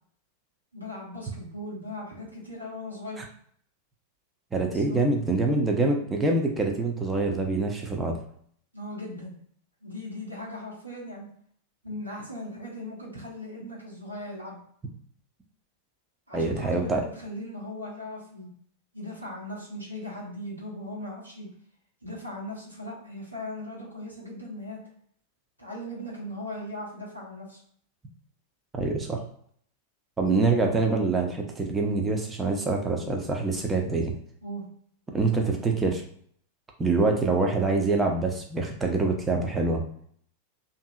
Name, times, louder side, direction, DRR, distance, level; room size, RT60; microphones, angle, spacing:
voice 1, 0.7-3.2 4.7-5.1 8.7-9.4 9.8-11.3 11.8-14.6 16.3-18.5 18.9-21.5 22.0-24.8 25.6-27.6 34.4-34.6, left 1 dB, 90° right, -6 dB, 1.2 m, -38 dB
voice 2, 4.5-8.2 16.3-17.0 28.7-29.2 30.2-34.1 35.1-36.0 36.8-39.8, right 3 dB, 15° right, 2 dB, 0.6 m, -25 dB
2.7 x 2.7 x 2.3 m, 0.62 s
figure-of-eight pair, 90°, 0 cm